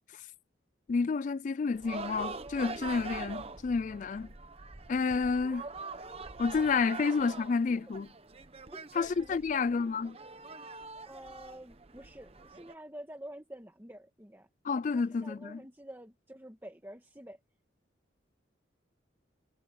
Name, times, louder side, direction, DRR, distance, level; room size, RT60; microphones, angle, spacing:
voice 1, 0.9-4.3 4.9-5.7 6.4-8.1 8.9-10.2 14.6-15.6, left 4 dB, 40° left, 0.3 m, -30 dB
sound 1, 1.7-12.7, right 4 dB, 30° right, 1.0 m, -44 dB
voice 2, 8.7-9.4 11.1-14.5 15.2-17.4, right 1 dB, 10° right, 1.6 m, -48 dB
head